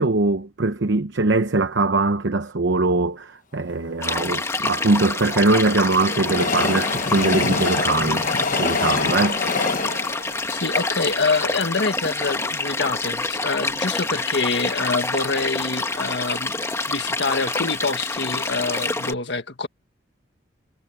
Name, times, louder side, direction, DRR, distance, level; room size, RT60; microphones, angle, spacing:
voice 1, 0.0-8.3 8.6-9.4, right 2 dB, 80° right, 0.9 m, -21 dB
sound 1, 4.0-19.1, left 3 dB, 15° left, 1.6 m, -27 dB
Train, 4.6-11.9 12.4-12.5 12.7-12.8, left 4 dB, 45° left, 1.2 m, -27 dB
voice 2, 10.5-19.7, left 4 dB, 70° left, 1.8 m, -26 dB
head